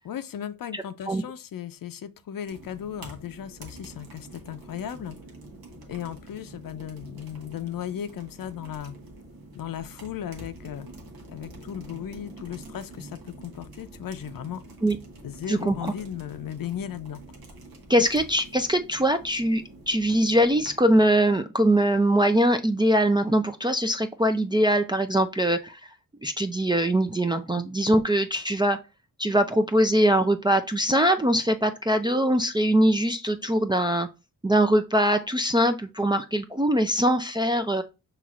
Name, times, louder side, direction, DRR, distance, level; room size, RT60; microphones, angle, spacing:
voice 1, 0.0-5.2 5.9-9.0 9.5-10.9 11.3-14.6 15.2-17.2, left 9 dB, 70° left, 0.6 m, -36 dB
voice 2, 0.7-1.2 14.8-15.0 15.5-15.9 17.9-25.8 26.2-28.8 29.2-34.1 34.4-37.8, right 1 dB, 15° right, 0.4 m, -22 dB
sound 1, 2.5-20.8, right 2 dB, 85° right, 1.1 m, -46 dB
5.8 x 3.0 x 2.4 m
cardioid pair, 60°, 35 cm